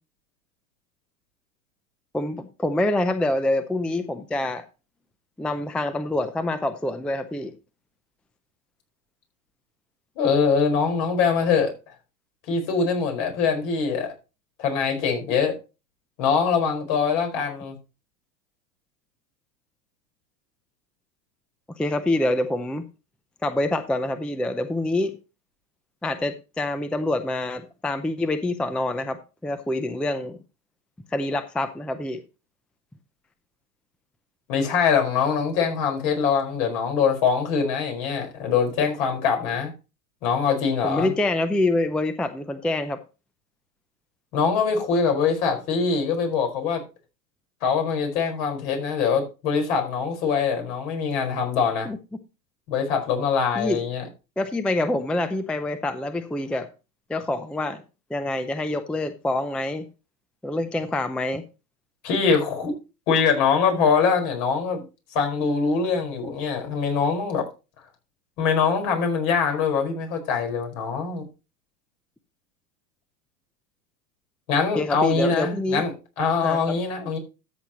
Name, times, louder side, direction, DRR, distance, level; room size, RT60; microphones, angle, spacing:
voice 1, 2.1-4.7 5.4-7.5 21.8-22.9 23.4-25.2 26.0-30.4 31.1-32.2 40.8-43.0 51.8-52.0 53.6-53.8 54.4-56.7 57.1-57.8 58.1-59.9 60.4-61.5 74.8-75.8 76.4-76.8, left 2 dB, ahead, 0.5 m, -26 dB
voice 2, 10.2-11.7 12.5-14.1 14.6-15.6 16.2-17.8 34.5-39.7 40.2-41.1 44.3-46.8 47.6-51.9 52.7-54.0 62.0-62.7 63.1-64.8 65.1-67.4 68.4-71.3 74.5-77.2, left 5 dB, 65° left, 5.0 m, -23 dB
13.5 x 7.8 x 3.0 m
hypercardioid pair, 110°, 50 cm